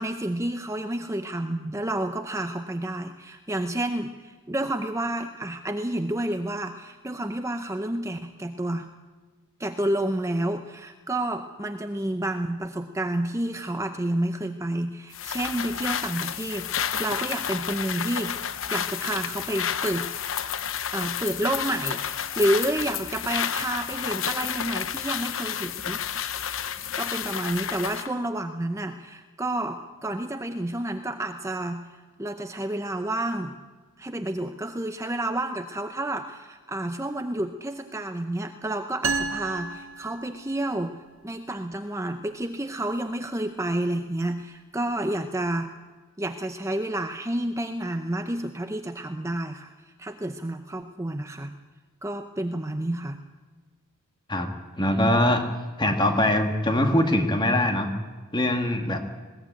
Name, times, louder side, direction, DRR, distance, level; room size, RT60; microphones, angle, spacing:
voice 1, 0.0-8.9 9.6-18.4 18.7-20.1 20.9-26.0 26.2-26.5 27.0-33.6 34.0-40.9 41.2-45.8 46.2-51.5 52.0-53.2 55.0-55.2, right 1 dB, 15° right, 7 dB, 0.7 m, -30 dB
sound 1, 15.1-28.1, left 8 dB, 65° left, 0.9 m, -31 dB
sound 2, 39.0-40.8, right 4 dB, 65° right, 1.4 m, -31 dB
voice 2, 54.8-55.4 55.8-57.9 58.3-59.0, left 1 dB, 20° left, 5 dB, 2.0 m, -22 dB
20.5 x 17.0 x 9.1 m, 1.4 s
head